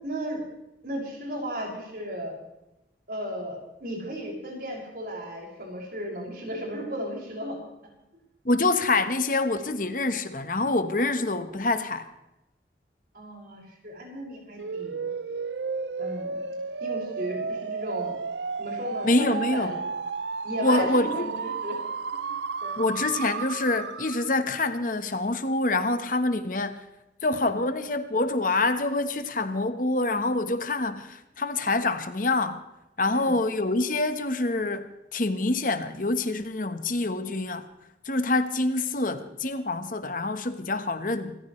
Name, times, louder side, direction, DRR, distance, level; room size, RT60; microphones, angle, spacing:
voice 1, 0.0-0.4 0.8-2.3 3.1-7.6 13.1-14.9 16.0-16.4 16.8-18.1 18.6-19.8 20.4-21.8 22.1-22.4 22.6-22.8 27.3-27.5 33.1-33.3, equal, 55° right, 6.1 m, -35 dB
voice 2, 8.4-12.0 19.0-19.7 20.6-21.3 22.8-26.8 27.2-32.6 33.0-37.6 38.1-41.4, left 2 dB, 50° left, 1.2 m, -26 dB
sound 1, 14.6-24.4, right 5 dB, 80° right, 0.6 m, -33 dB
26.5 x 14.5 x 3.2 m
head